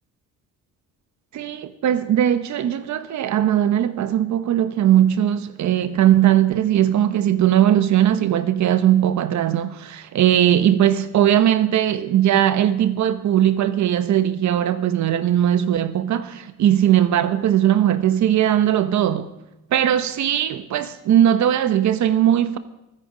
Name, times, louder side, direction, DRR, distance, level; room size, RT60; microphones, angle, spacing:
voice 1, 1.3-19.3 19.7-22.6, right 11 dB, 70° right, 1.1 m, -19 dB
23.5 x 9.9 x 5.1 m
cardioid pair, 90°, 30 cm